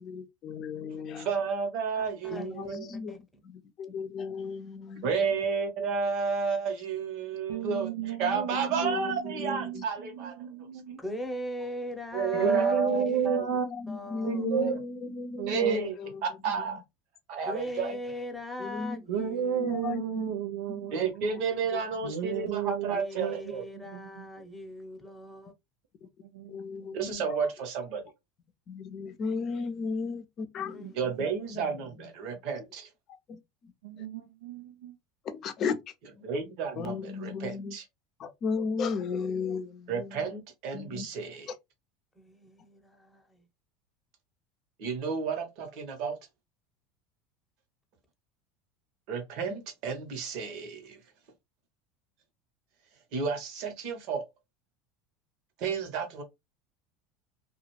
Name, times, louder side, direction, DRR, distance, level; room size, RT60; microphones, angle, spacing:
voice 1, 0.0-1.3 2.3-5.2 8.3-8.4 8.8-9.8 12.3-16.2 16.5-16.8 18.6-19.0 19.6-20.3 20.7-21.1 21.7-21.8 22.3-22.6 26.0-26.1 26.5-27.5 28.7-31.0 31.5-32.1 33.1-33.7 34.0-34.1 35.2-35.8 36.8-37.8 38.2-40.3 40.7-41.1, left 5 dB, 45° left, 0.6 m, -36 dB
voice 2, 1.2-3.1 5.0-10.5 12.1-13.4 14.5-14.8 15.5-16.0 16.2-16.8 17.3-18.0 20.9-23.6 26.9-28.1 30.9-32.9 36.2-37.8 39.9-41.5 44.8-46.2 49.1-51.0 53.1-54.2 55.6-56.2, right 5 dB, 65° right, 1.1 m, -31 dB
voice 3, 1.9-2.7 3.1-3.2 11.0-13.3 13.9-14.4 17.5-19.8 22.9-25.5 30.7-31.5 42.2-43.4, left 1 dB, 5° left, 0.9 m, -40 dB
voice 4, 7.5-9.8 10.1-11.0 12.4-13.7 14.0-14.7 15.4-15.9 19.1-21.3 22.0-24.5 26.2-26.6 30.8-30.9 31.2-31.3 33.8-35.0, right 8 dB, 85° right, 0.5 m, -33 dB
2.4 x 2.4 x 3.1 m
hypercardioid pair, 95°, 0 cm